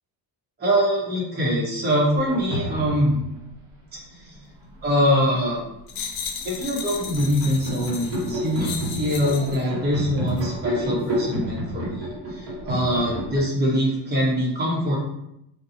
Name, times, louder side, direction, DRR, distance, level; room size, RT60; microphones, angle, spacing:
voice 1, 0.6-3.2 3.9-4.3 4.8-5.6 6.4-15.0, equal, 20° right, -5 dB, 1.0 m, -23 dB
sound 1, 2.1-3.4 4.3-5.4 5.9-13.4, equal, 75° right, 1.4 m, -30 dB
sound 2, 5.9-9.6 10.3-10.5, left 7 dB, 90° left, 0.6 m, -35 dB
2.9 x 2.3 x 4.0 m, 0.82 s
cardioid pair, 140°, 44 cm